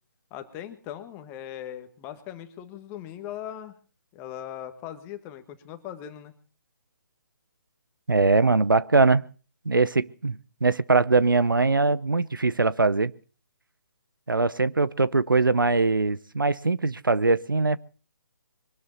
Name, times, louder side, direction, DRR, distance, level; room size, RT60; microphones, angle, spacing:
voice 1, 0.3-3.8 4.1-6.3, left 11 dB, 20° left, 8 dB, 1.6 m, -39 dB
voice 2, 8.1-9.2 9.6-13.1 14.3-17.8, right 3 dB, 85° right, 18 dB, 0.8 m, -22 dB
23.5 x 12.5 x 4.1 m, 0.38 s
figure-of-eight pair, 145°, 11 cm